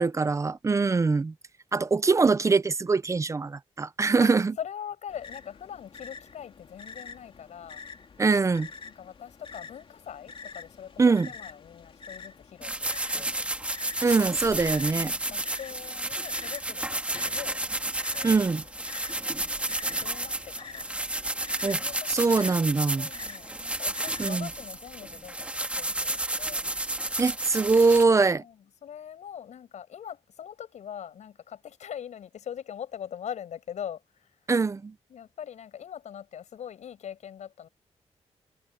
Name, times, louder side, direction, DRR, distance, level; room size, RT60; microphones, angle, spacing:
voice 1, 0.0-1.3 1.7-4.5 8.2-8.7 11.0-11.3 14.0-15.1 18.2-18.6 21.6-21.8 22.1-23.1 24.2-24.5 27.2-28.4 34.5-34.9, right 4 dB, 25° right, 0.6 m, -23 dB
voice 2, 4.6-7.8 8.8-13.4 14.2-14.4 14.9-18.3 19.4-21.1 21.8-22.3 22.9-26.6 28.3-34.4 35.1-37.7, left 9 dB, 90° left, 7.3 m, -42 dB
sound 1, 5.1-24.7, left 5 dB, 50° left, 2.6 m, -47 dB
sound 2, 12.6-28.0, right 1 dB, 10° right, 1.7 m, -32 dB
wide cardioid pair, 135°, 12 cm